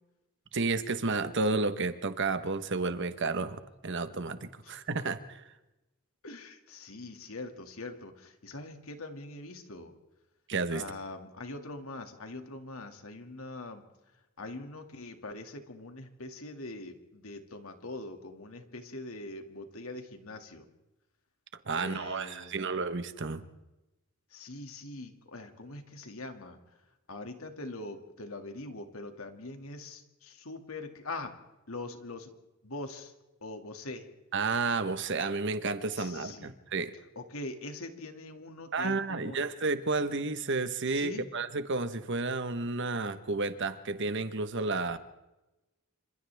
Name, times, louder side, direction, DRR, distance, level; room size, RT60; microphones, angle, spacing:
voice 1, 0.5-5.4 10.5-10.8 21.6-23.4 34.3-36.9 38.7-45.0, right 3 dB, 60° right, 11 dB, 1.2 m, -31 dB
voice 2, 6.2-9.9 10.7-13.8 14.4-20.7 21.7-22.7 24.3-26.6 27.1-31.3 31.7-32.3 32.6-33.1 33.4-34.1 35.9-36.5 37.2-39.4 40.9-41.3, left 2 dB, 85° left, 5 dB, 2.3 m, -43 dB
28.0 x 26.0 x 3.5 m, 1.0 s
head